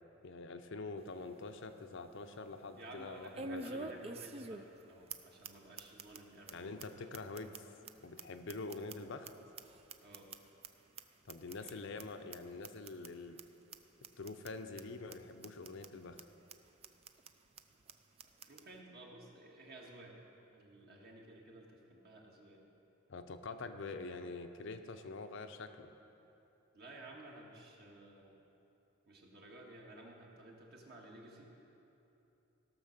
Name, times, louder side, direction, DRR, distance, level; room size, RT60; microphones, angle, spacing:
voice 1, 0.2-4.0 6.5-7.6 8.0-9.3 11.3-13.4 14.2-16.2 23.1-25.9, left 3 dB, 60° left, 7 dB, 0.6 m, -45 dB
sound 1, 1.0-1.1 1.6-1.7 3.3-4.8 5.1-5.2 5.4-5.5 5.8-6.2 6.5-6.6 6.8-6.9 7.1-9.3 9.6-10.7 11.0-11.1 11.3-11.7 12.0-12.1 12.3-12.4 12.6-13.1 13.4-13.5 13.7-13.8 14.0-14.5 14.8-14.9 15.1-15.2 15.4-15.9 16.2-16.3 16.5-16.6 16.8-17.3 17.6-17.7 17.9-18.0 18.2-18.6, right 3 dB, 30° right, 0.4 m, -46 dB
voice 2, 2.8-7.0 10.0-10.3 11.6-11.9 17.7-17.8 18.4-20.2 20.5-22.6 26.7-28.4 29.1-31.5, right 2 dB, 50° right, -1 dB, 1.8 m, -54 dB
16.5 x 6.3 x 6.6 m, 3.0 s
head